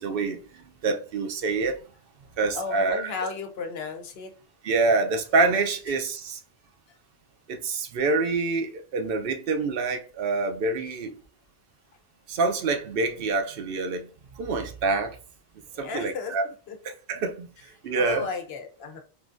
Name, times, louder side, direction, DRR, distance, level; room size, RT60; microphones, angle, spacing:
voice 1, 0.0-1.8 2.4-3.1 4.6-6.4 7.5-11.2 12.3-15.2 15.8-16.5 16.8-18.3, right 3 dB, 70° right, 0.7 m, -26 dB
voice 2, 2.5-4.3 15.7-16.7 17.9-19.0, left 5 dB, 75° left, 0.9 m, -34 dB
3.6 x 2.5 x 2.4 m
omnidirectional pair, 1.0 m